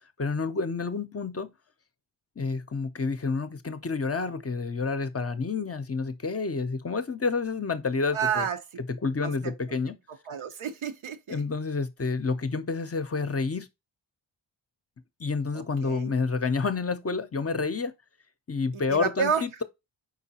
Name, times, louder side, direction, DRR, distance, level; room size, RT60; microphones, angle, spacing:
voice 1, 0.2-1.5 2.4-8.5 8.9-10.0 11.3-13.7 15.2-17.9 18.5-19.6, left 4 dB, 30° left, 0.5 m, -29 dB
voice 2, 8.1-8.6 9.2-9.3 10.3-11.4 15.5-16.1 18.7-19.4, right 7 dB, 85° right, 0.8 m, -30 dB
5.0 x 3.7 x 2.8 m
wide cardioid pair, 70°, 47 cm